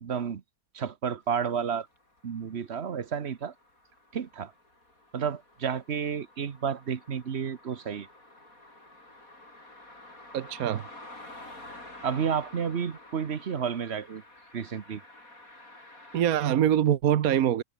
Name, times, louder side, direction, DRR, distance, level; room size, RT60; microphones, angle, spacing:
voice 1, 0.0-0.4 0.7-1.9 2.2-3.5 4.1-4.5 5.1-8.1 12.0-14.2 14.5-15.0, right 7 dB, 50° right, 1.3 m, -31 dB
sound 1, 1.6-16.2, left 2 dB, 70° left, 8.3 m, -50 dB
voice 2, 10.3-10.8 16.1-17.6, right 10 dB, 80° right, 1.4 m, -24 dB
omnidirectional pair, 1.5 m